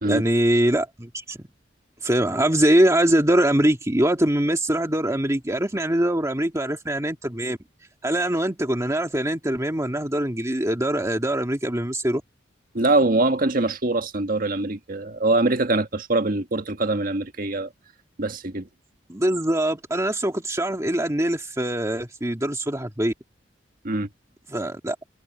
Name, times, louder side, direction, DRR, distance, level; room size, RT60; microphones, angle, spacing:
voice 1, 0.1-1.4 2.0-7.6 8.0-12.2 19.1-23.1 24.5-25.0, right 1 dB, 15° right, 2.0 m, -23 dB
voice 2, 12.7-17.7 18.2-18.7 23.8-24.1, right 2 dB, 50° right, 1.5 m, -23 dB
head